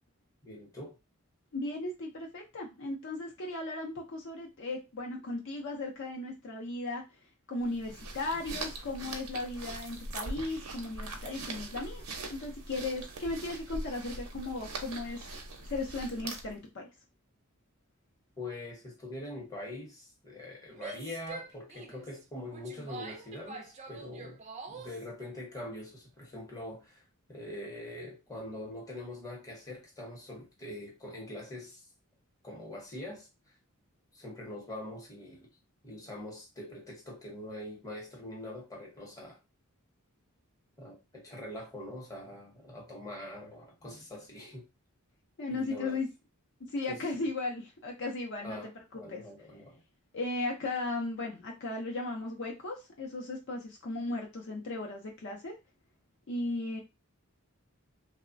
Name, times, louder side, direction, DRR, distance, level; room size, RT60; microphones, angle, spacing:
voice 1, 0.4-1.0 18.4-24.4 24.7-27.0 27.3-31.8 32.4-33.3 34.1-35.5 35.8-39.4 40.8-44.7 45.5-46.0 46.9-47.3 48.4-48.7 48.9-49.8, left 1 dB, 15° left, 0.8 m, -43 dB
voice 2, 1.5-7.0 7.5-15.3 15.7-16.9 45.4-46.1 46.6-48.6 48.9-49.2 50.1-55.6 56.3-56.8, left 2 dB, 55° left, 0.5 m, -36 dB
sound 1, 7.6-16.6, right 2 dB, 80° right, 0.6 m, -42 dB
Female speech woman speaking / Yell, 20.7-25.0, right 3 dB, 30° right, 0.4 m, -45 dB
3.0 x 2.0 x 2.5 m
head